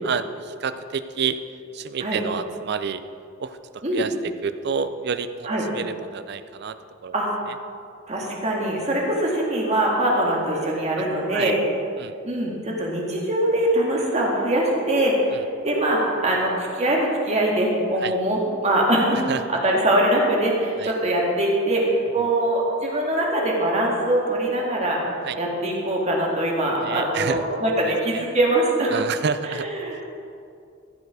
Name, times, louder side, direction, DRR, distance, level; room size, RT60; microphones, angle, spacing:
voice 1, 0.0-1.4 1.7-3.0 3.4-6.8 7.0-7.1 7.5-7.6 11.0-11.1 11.3-11.5 12.0-12.1 15.3-15.4 18.0-18.1 19.3-19.4 20.8-20.9 25.2-25.4 26.8-27.4 27.8-28.2 28.9-29.7, right 6 dB, 55° right, 12 dB, 0.5 m, -29 dB
voice 2, 8.1-11.6 12.2-15.4 15.6-19.2 19.5-21.8 22.1-25.0 25.3-28.9 29.4-30.0, right 1 dB, 35° right, -2 dB, 1.9 m, -22 dB
15.0 x 7.0 x 4.9 m, 2.4 s
head